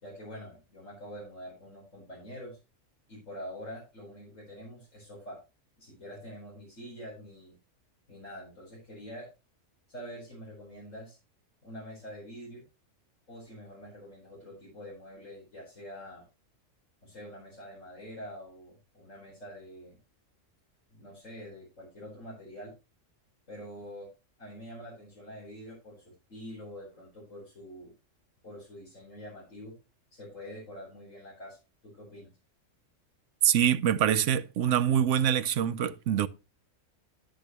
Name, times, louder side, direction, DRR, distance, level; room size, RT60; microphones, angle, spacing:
voice 1, 0.0-2.6 3.1-5.4 5.8-7.5 8.1-9.3 9.9-11.2 11.6-12.6 13.3-16.2 17.0-20.0 20.9-22.7 23.5-24.1 24.4-27.9 28.4-29.7 30.1-31.6 31.8-32.3, equal, 75° left, 4.9 m, -45 dB
voice 2, 33.4-36.3, right 9 dB, 70° right, 1.0 m, -25 dB
10.5 x 9.1 x 3.1 m
omnidirectional pair, 1.3 m